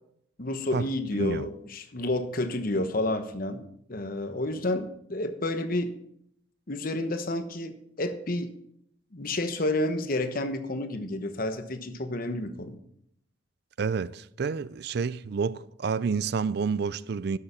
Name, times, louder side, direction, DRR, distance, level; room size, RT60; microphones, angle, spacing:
voice 1, 0.4-5.9 6.7-8.5 9.1-12.8, left 1 dB, 50° left, 1.1 m, -30 dB
voice 2, 1.1-1.5 13.8-17.4, right 5 dB, 55° right, 0.4 m, -29 dB
12.0 x 6.8 x 5.7 m
head